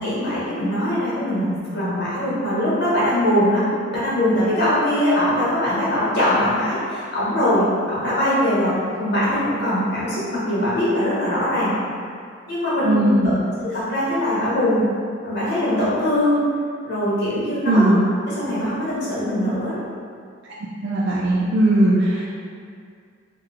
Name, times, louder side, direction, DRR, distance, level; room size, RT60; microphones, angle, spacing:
voice 1, 0.0-8.7 9.0-11.7 12.5-13.3 13.6-14.9 15.2-16.4 16.8-17.9 18.3-19.8, left 1 dB, 55° left, -9 dB, 1.1 m, -21 dB
voice 2, 12.8-13.3 17.6-18.0 20.8-22.3, right 1 dB, 60° right, -5 dB, 0.3 m, -18 dB
2.7 x 2.2 x 3.8 m, 2.2 s
head